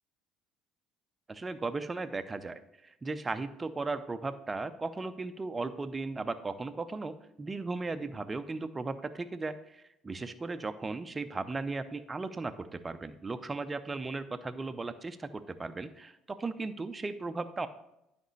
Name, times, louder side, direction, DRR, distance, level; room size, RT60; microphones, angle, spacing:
voice 1, 1.3-17.7, right 3 dB, 25° right, 10 dB, 0.7 m, -36 dB
11.5 x 5.2 x 3.3 m, 0.84 s
hypercardioid pair, 55°, 0 cm